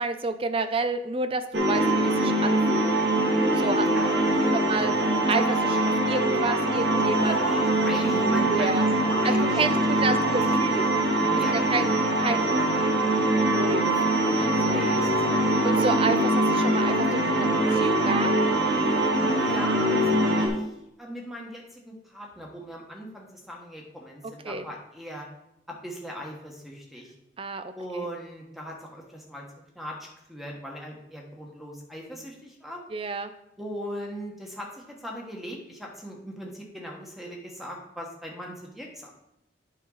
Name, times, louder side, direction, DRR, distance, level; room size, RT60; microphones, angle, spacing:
voice 1, 0.0-2.9 3.6-3.9 4.5-4.9 5.3-7.4 8.5-8.9 9.2-10.9 11.3-12.8 13.4-14.9 15.6-18.3 24.4-24.7 27.4-28.1 32.9-33.3, right 3 dB, 30° right, 10 dB, 0.5 m, -30 dB
sound 1, 1.5-20.5, right 1 dB, 75° right, 1.3 m, -23 dB
voice 2, 3.9-4.7 7.2-9.8 10.0-10.4 11.4-11.7 14.6-15.4 19.4-20.7 21.0-25.3 25.7-27.1 27.7-29.4 29.7-32.8 33.6-39.1, equal, ahead, 0 dB, 1.4 m, -39 dB
9.1 x 5.6 x 4.0 m, 0.82 s
head